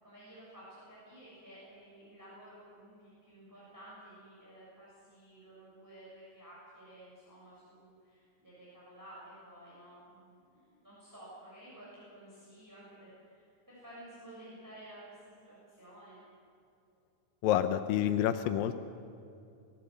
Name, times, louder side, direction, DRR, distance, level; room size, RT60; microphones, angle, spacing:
voice 1, 0.0-16.2, right 1 dB, 5° right, -8 dB, 6.8 m, -53 dB
voice 2, 17.4-18.8, left 11 dB, 90° left, 9 dB, 2.5 m, -28 dB
24.5 x 17.5 x 8.1 m, 2.7 s
omnidirectional pair, 3.9 m